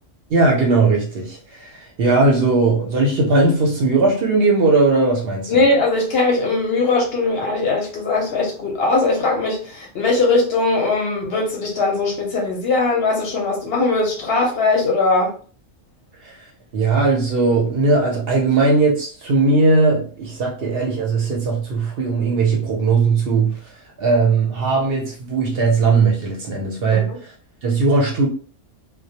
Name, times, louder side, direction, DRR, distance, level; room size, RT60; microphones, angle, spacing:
voice 1, 0.3-5.6 16.2-16.4 16.7-23.6 24.0-27.1 27.6-28.3, right 3 dB, 60° right, 0.7 m, -18 dB
voice 2, 5.5-15.3 26.9-27.2, left 3 dB, 60° left, 0.8 m, -20 dB
2.2 x 2.1 x 2.7 m
omnidirectional pair, 1.3 m